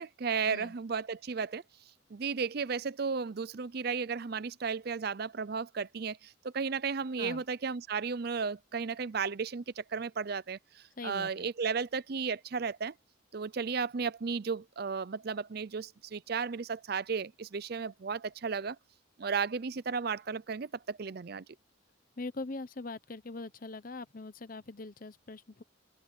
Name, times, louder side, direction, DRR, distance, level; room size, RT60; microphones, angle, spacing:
voice 1, 0.0-1.6 2.1-12.9 13.3-18.8 19.2-21.4, right 5 dB, 50° right, 0.5 m, -34 dB
voice 2, 11.0-11.5 22.2-25.6, left 3 dB, 40° left, 0.8 m, -42 dB
head